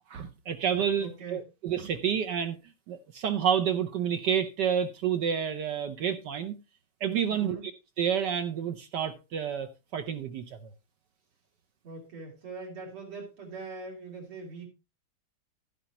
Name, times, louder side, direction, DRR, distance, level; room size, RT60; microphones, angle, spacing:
voice 1, 0.1-2.6 2.9-6.6 7.0-7.6 8.0-10.4, right 8 dB, 65° right, 8 dB, 1.1 m, -29 dB
voice 2, 1.0-1.5 7.3-7.7 11.8-14.7, right 4 dB, 80° right, -1 dB, 4.3 m, -42 dB
11.5 x 10.0 x 2.9 m, 0.27 s
omnidirectional pair, 2.4 m